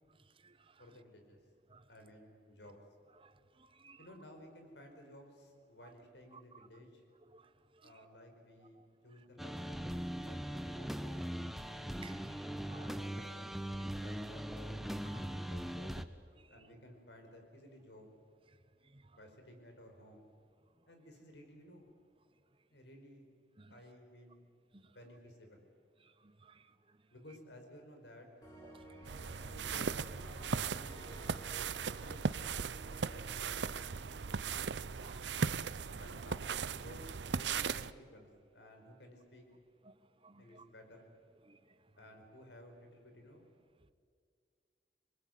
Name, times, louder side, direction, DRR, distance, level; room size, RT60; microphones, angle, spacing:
voice 1, 0.2-0.8 1.7-1.9 3.2-4.1 6.5-6.7 7.2-7.9 8.8-8.9 12.0-12.9 15.0-15.2 16.0-16.1 16.4-16.6 18.8-19.2 23.6-23.7 24.7-24.9 26.0-27.0 28.6-29.8 31.8-31.9 35.0-36.0 39.8-39.9 40.2-40.6 41.4-41.9, right 3 dB, 30° right, 1.0 m, -58 dB
voice 2, 0.8-1.4 1.9-2.8 4.0-7.0 7.8-11.3 12.7-14.9 15.1-16.0 16.5-18.1 19.1-20.3 20.9-21.9 22.7-23.3 23.7-24.4 24.8-25.6 27.1-28.3 29.5-32.5 33.0-33.9 34.2-34.7 36.0-39.5 40.4-41.1 42.0-43.5, left 1 dB, 80° left, 5.1 m, -56 dB
sound 1, 9.4-16.0, equal, ahead, 0.8 m, -40 dB
sound 2, 28.4-36.0, right 1 dB, 25° left, 6.2 m, -55 dB
sound 3, 29.1-37.9, right 5 dB, 85° right, 0.7 m, -38 dB
26.5 x 20.5 x 9.4 m
head